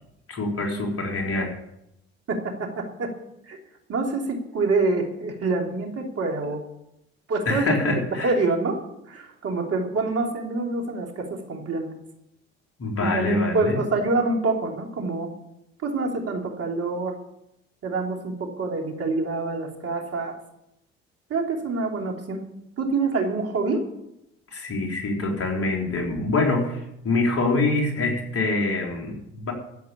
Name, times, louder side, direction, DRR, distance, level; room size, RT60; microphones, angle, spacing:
voice 1, 0.3-1.5 7.5-8.3 12.8-13.8 24.5-29.5, left 2 dB, 45° left, 1 dB, 4.2 m, -25 dB
voice 2, 2.3-3.1 3.5-3.6 3.9-6.6 7.3-7.7 8.2-8.8 9.1-11.9 13.0-15.3 15.8-17.2 17.8-20.4 21.3-22.4 22.8-23.8, right 3 dB, 50° right, 2 dB, 3.1 m, -26 dB
13.0 x 8.2 x 8.5 m, 0.83 s
hypercardioid pair, 60°, 32 cm